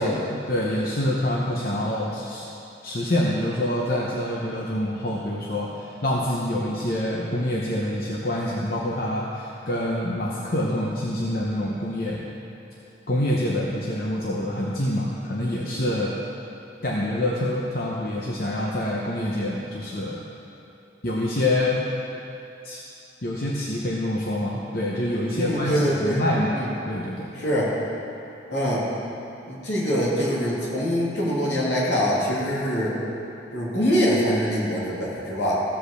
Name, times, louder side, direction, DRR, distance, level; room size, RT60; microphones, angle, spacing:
voice 1, 0.0-2.4 2.8-12.3 13.1-16.1 16.8-20.2 21.0-21.8 22.6-22.8 23.2-27.3, left 1 dB, 50° left, -4 dB, 0.9 m, -26 dB
voice 2, 25.3-26.2 26.5-26.7 27.4-27.7 28.5-28.8 29.5-33.0 33.5-35.6, equal, 75° left, -6 dB, 2.7 m, -24 dB
15.0 x 5.2 x 6.7 m, 2.7 s
head